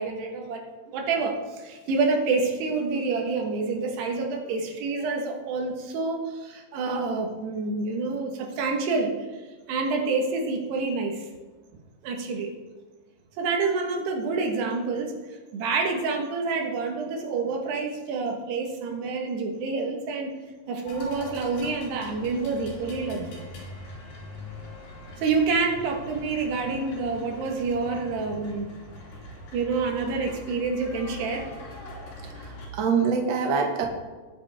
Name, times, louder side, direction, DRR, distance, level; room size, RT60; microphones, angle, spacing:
voice 1, 0.0-9.4 9.7-11.3 12.0-12.5 13.4-15.1 15.5-20.3 20.7-23.4 25.2-28.7 29.5-31.5, right 4 dB, 75° right, 2 dB, 3.4 m, -28 dB
sound 1, 20.9-32.7, left 1 dB, 60° left, 4.8 m, -42 dB
voice 2, 32.2-33.8, right 5 dB, 55° right, 1 dB, 2.0 m, -25 dB
19.5 x 7.3 x 3.5 m, 1.3 s
omnidirectional pair, 5.0 m